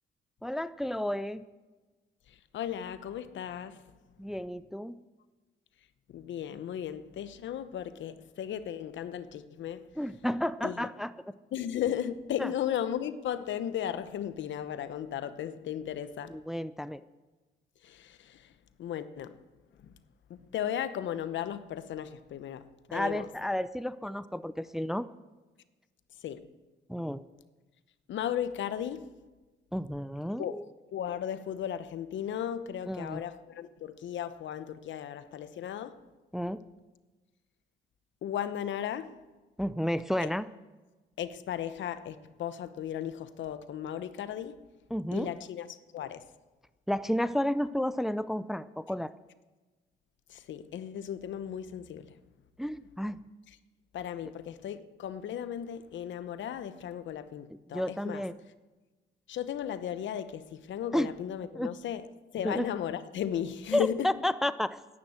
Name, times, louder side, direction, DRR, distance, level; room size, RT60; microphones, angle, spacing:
voice 1, 0.4-1.4 4.2-5.0 10.0-11.1 12.4-12.5 16.3-17.0 22.9-25.1 26.9-27.2 29.7-30.6 32.9-33.2 36.3-36.6 39.6-40.4 44.9-45.3 46.9-49.1 52.6-53.2 57.7-58.3 60.9-61.1 61.6-61.7 62.4-62.6 63.7-64.8, left 1 dB, ahead, 0.5 m, -31 dB
voice 2, 2.3-3.8 6.1-9.8 10.6-10.9 11.5-16.4 17.8-18.5 18.8-19.4 19.8-19.9 20.3-23.3 26.2-26.5 28.1-29.1 30.4-30.5 30.9-36.0 38.2-39.1 40.2-40.3 41.2-44.6 45.1-46.2 50.3-52.1 53.9-58.2 59.3-62.1 62.3-64.1, left 10 dB, 70° left, 0.9 m, -36 dB
11.0 x 10.0 x 8.7 m
cardioid pair, 90°, 20 cm